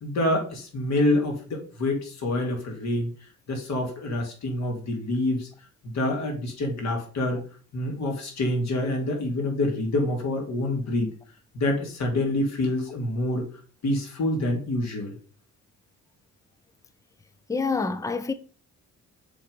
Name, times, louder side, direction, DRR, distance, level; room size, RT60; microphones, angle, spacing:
voice 1, 0.0-3.1 3.5-5.5 5.8-7.4 7.7-11.1 11.5-13.5 13.8-15.1, left 1 dB, 65° left, 2.7 m, -27 dB
voice 2, 17.5-18.3, left 4 dB, 10° left, 0.6 m, -26 dB
6.8 x 3.8 x 5.3 m
cardioid pair, 90°, 30 cm